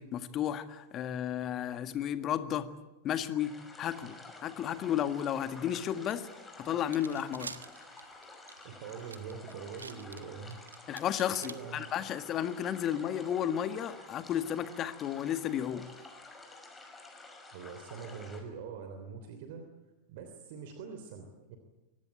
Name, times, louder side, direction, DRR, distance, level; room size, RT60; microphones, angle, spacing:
voice 1, 0.0-2.7 3.0-6.3 6.6-7.5 10.9-15.9, left 10 dB, 30° left, 11 dB, 1.8 m, -33 dB
sound 1, 3.4-18.4, left 2 dB, 10° left, 5.6 m, -51 dB
sound 2, 6.1-6.2 6.7-11.5, right 5 dB, 75° right, 1.5 m, -47 dB
voice 2, 8.6-10.6 11.4-11.9 17.5-19.6 20.1-21.6, right 6 dB, 50° right, 6 dB, 3.2 m, -44 dB
25.0 x 19.0 x 8.9 m, 1.1 s
figure-of-eight pair, 90°, 0 cm